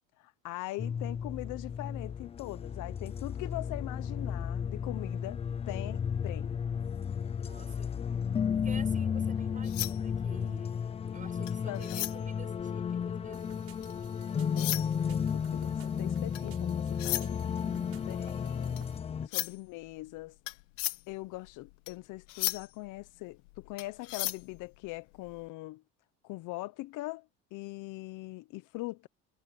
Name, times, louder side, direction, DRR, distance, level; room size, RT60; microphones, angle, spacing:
voice 1, 0.2-6.6 11.7-12.1 14.2-17.4 18.1-18.8 19.2-20.4 21.1-25.8 26.2-29.1, left 19 dB, 55° left, 0.9 m, -42 dB
sound 1, 0.8-19.3, left 7 dB, 15° left, 0.4 m, -33 dB
voice 2, 7.4-8.0 8.5-10.8 11.1-13.6 17.6-18.2, right 5 dB, 20° right, 7.0 m, -50 dB
sound 2, 9.3-14.1 14.4-25.4, left 20 dB, 85° left, 1.2 m, -38 dB
sound 3, 13.3-19.0, right 10 dB, 40° right, 7.3 m, -59 dB
supercardioid pair, 115°, 36 cm